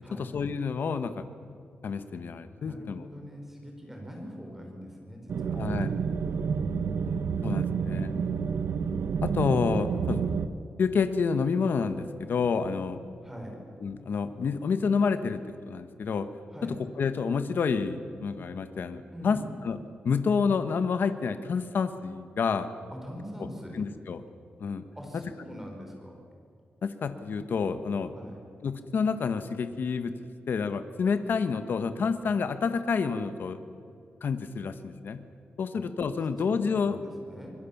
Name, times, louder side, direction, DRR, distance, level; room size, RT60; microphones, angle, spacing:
voice 1, 0.2-1.2 1.8-3.1 5.5-5.9 7.0-8.1 9.2-10.2 10.8-13.0 13.8-16.3 16.6-19.8 20.0-22.7 23.4-23.5 23.7-24.2 24.6-24.8 26.8-28.1 28.6-30.1 30.5-33.6 34.2-35.2 35.6-37.0, left 5 dB, 60° left, 10 dB, 1.3 m, -29 dB
voice 2, 2.6-5.8 6.2-6.3 7.7-8.5 13.2-13.6 16.5-16.8 19.1-19.4 23.0-23.8 24.9-26.2 28.1-28.4 35.7-35.8 36.7-37.5, equal, 10° right, 1 dB, 4.9 m, -43 dB
sound 1, 5.3-10.5, right 6 dB, 75° right, 1.0 m, -29 dB
sound 2, 11.5-14.6, equal, 35° right, 5.3 m, -50 dB
25.5 x 22.0 x 7.2 m, 2.4 s
wide cardioid pair, 135°, 4 cm